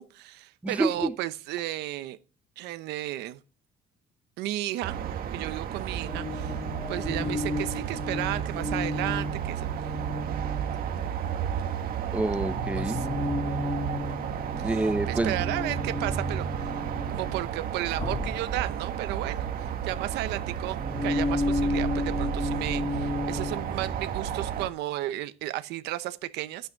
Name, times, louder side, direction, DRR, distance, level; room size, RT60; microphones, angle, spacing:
voice 1, 0.0-2.2 2.6-3.4 4.4-5.0 5.3-6.6 6.9-9.7 12.7-13.1 15.1-16.5 17.1-26.7, right 15 dB, 90° right, 0.9 m, -33 dB
voice 2, 0.6-1.1 12.1-13.0 14.5-15.4, right 2 dB, 10° right, 0.7 m, -28 dB
sound 1, 4.8-24.7, right 9 dB, 60° right, 1.5 m, -32 dB
sound 2, 6.1-11.2 12.4-17.5 17.9-19.9 20.3-24.3, left 2 dB, 20° left, 2.2 m, -33 dB
11.5 x 9.2 x 4.7 m
cardioid pair, 110°, 17 cm